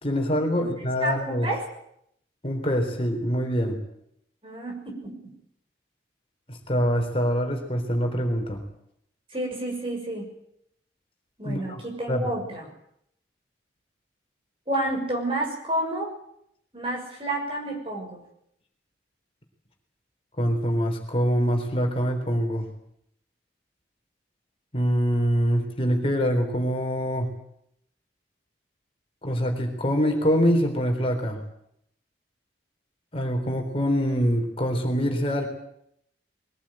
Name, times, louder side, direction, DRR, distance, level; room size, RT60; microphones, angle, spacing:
voice 1, 0.0-1.5 2.4-3.8 6.5-8.6 11.4-11.8 12.1-12.2 20.4-22.7 24.7-27.3 29.2-31.4 33.1-35.5, equal, 30° left, 3 dB, 3.8 m, -24 dB
voice 2, 1.0-1.7 4.4-5.3 9.3-10.3 11.4-12.7 14.7-16.2 16.7-18.2, right 1 dB, 30° right, 1 dB, 6.5 m, -30 dB
22.0 x 18.0 x 9.0 m, 0.73 s
head